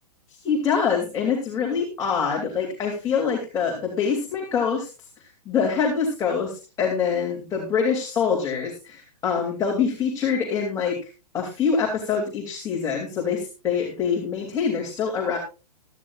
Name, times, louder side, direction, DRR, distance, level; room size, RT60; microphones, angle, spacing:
voice 1, 0.4-4.9 5.4-11.0 11.3-15.4, left 6 dB, 15° left, -1 dB, 2.9 m, -25 dB
16.5 x 12.5 x 2.5 m, 0.31 s
figure-of-eight pair, 115°, 21 cm